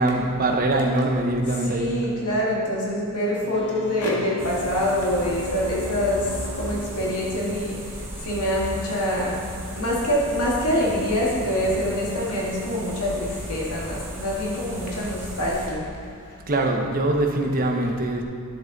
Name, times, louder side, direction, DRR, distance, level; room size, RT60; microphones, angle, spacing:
voice 1, 0.0-2.0 16.5-18.2, right 2 dB, 40° right, 2 dB, 0.8 m, -23 dB
voice 2, 1.5-9.5 9.7-16.4, left 1 dB, 90° left, -4 dB, 1.9 m, -25 dB
sound 1, 3.4-8.4 11.2-11.3, right 1 dB, 70° left, 1.1 m, -39 dB
sound 2, 4.4-15.7, equal, 10° right, 1.7 m, -36 dB
10.5 x 7.5 x 4.0 m, 2.2 s
head